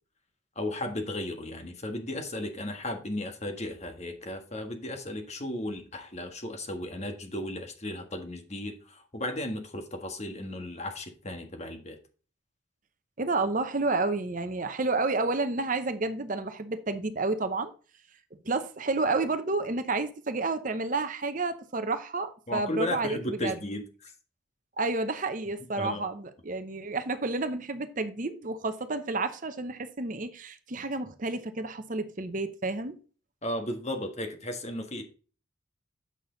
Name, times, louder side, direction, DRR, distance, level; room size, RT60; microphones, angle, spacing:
voice 1, 0.5-12.0 22.5-24.1 25.8-26.1 33.4-35.0, left 1 dB, 35° left, 1.6 m, -35 dB
voice 2, 13.2-17.7 18.4-23.6 24.8-33.0, right 3 dB, 40° right, 0.8 m, -30 dB
8.4 x 6.2 x 3.9 m
head